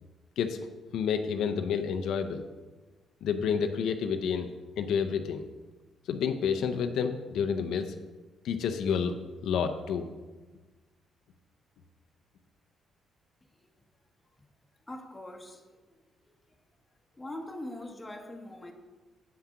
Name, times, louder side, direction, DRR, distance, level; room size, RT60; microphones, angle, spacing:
voice 1, 0.9-2.4 3.2-4.5 4.8-5.4 6.1-7.9 8.4-9.2 9.4-10.1, left 7 dB, 80° left, 0.6 m, -29 dB
voice 2, 14.9-16.3 17.1-18.7, left 1 dB, 15° left, 1.3 m, -43 dB
8.4 x 5.9 x 5.7 m
cardioid pair, 90°, 0 cm